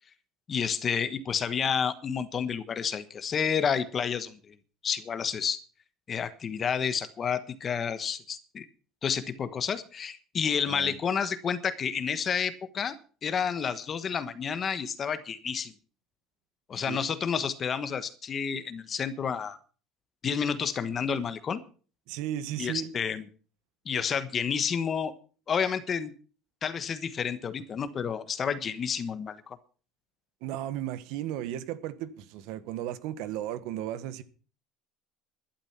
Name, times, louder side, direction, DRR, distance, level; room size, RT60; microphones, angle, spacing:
voice 1, 0.5-4.5 4.8-5.6 6.1-8.7 9.0-13.0 13.2-15.7 16.7-19.6 20.2-21.6 22.6-23.3 23.8-25.1 25.5-26.1 26.6-29.6, left 7 dB, 25° left, 1.2 m, -30 dB
voice 2, 22.1-22.9 30.4-34.2, right 12 dB, 70° right, 1.5 m, -35 dB
12.0 x 11.5 x 6.0 m
cardioid pair, 165°, 0 cm